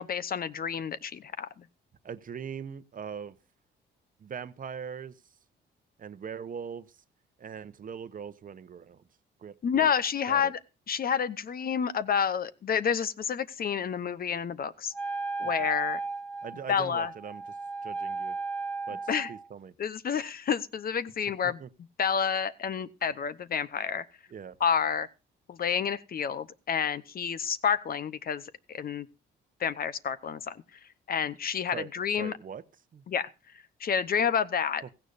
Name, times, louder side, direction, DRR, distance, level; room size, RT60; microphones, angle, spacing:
voice 1, 0.0-1.6 9.6-10.6 10.9-14.9 15.4-16.0 16.7-17.1 19.1-19.3 19.8-21.6 22.0-24.0 24.6-25.1 25.5-29.1 29.6-30.6 31.1-32.3 33.1-33.3 33.8-34.8, left 7 dB, 50° left, 0.8 m, -29 dB
voice 2, 2.0-3.4 4.2-5.2 6.0-7.0 7.4-9.0 9.4-9.9 10.3-10.5 15.4-15.7 16.4-17.4 17.8-18.4 18.9-19.7 21.6-21.7 24.3-24.6 31.7-31.9 32.2-32.6 32.9-33.0, right 7 dB, 45° right, 0.9 m, -41 dB
Wind instrument woodwind instrument, 14.9-19.5, right 3 dB, 5° left, 1.1 m, -35 dB
16.0 x 15.5 x 2.6 m
cardioid pair, 90°, 20 cm